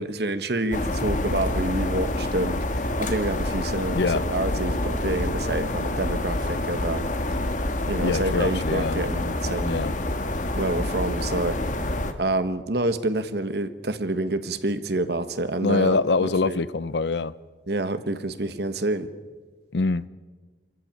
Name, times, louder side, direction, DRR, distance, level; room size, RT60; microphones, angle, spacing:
voice 1, 0.0-7.1 7.9-9.9 10.6-11.6 12.2-16.6 17.7-19.1, right 2 dB, 65° right, 1.4 m, -28 dB
sound 1, 0.7-12.1, left 1 dB, 45° left, 1.5 m, -27 dB
voice 2, 3.9-4.2 8.0-9.0 9.6-9.9 15.6-17.3 19.7-20.0, left 3 dB, 70° left, 0.6 m, -24 dB
25.5 x 14.5 x 9.0 m
head